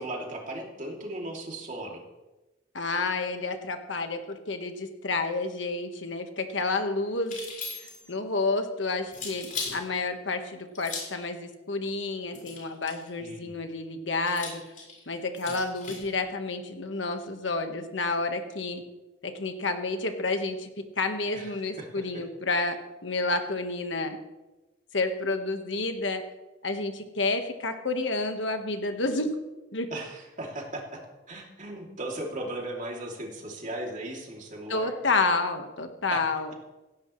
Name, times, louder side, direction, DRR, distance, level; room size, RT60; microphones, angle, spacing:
voice 1, 0.0-2.0 13.2-13.5 21.3-22.2 29.9-31.0 31.3-34.9 36.1-36.2, right 1 dB, 45° right, 0 dB, 2.9 m, -37 dB
voice 2, 2.7-7.4 8.1-14.6 15.1-18.8 19.2-20.7 21.0-24.2 24.9-26.2 26.6-29.3 29.7-29.9 34.7-36.5, left 3 dB, 70° left, 6 dB, 1.5 m, -30 dB
sound 1, 7.2-8.1 9.1-9.8 10.7-11.2 12.3-13.1 14.3-16.1, left 4 dB, 45° left, 5.1 m, -38 dB
17.5 x 16.0 x 3.2 m, 1.1 s
head